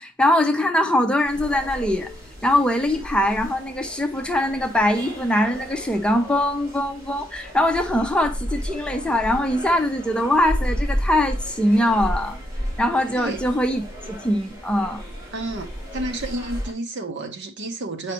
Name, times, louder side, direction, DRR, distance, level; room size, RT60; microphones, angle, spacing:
voice 1, 0.0-2.1 2.4-12.4 12.8-13.8 14.1-15.0, left 1 dB, 5° left, 0.7 m, -22 dB
sound 1, 1.2-16.7, equal, 15° right, 4.7 m, -33 dB
voice 2, 15.3-18.1, right 2 dB, 55° right, 1.1 m, -31 dB
8.9 x 5.0 x 3.0 m
head